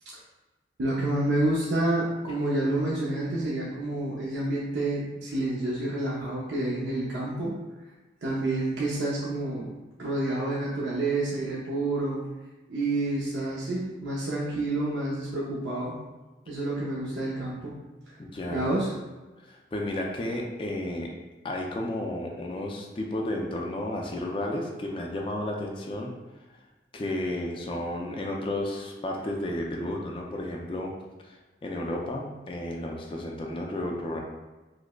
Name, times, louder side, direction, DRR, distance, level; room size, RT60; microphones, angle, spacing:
voice 1, 0.8-7.5 8.2-9.7 10.0-12.2 12.7-16.0 16.5-17.7 18.5-18.9, right 2 dB, 75° right, -5 dB, 0.5 m, -28 dB
voice 2, 18.2-18.8 19.4-21.1 21.4-26.1 26.9-30.9 31.2-34.2, left 1 dB, 30° left, 0 dB, 0.3 m, -32 dB
4.8 x 2.0 x 2.2 m, 1.2 s
head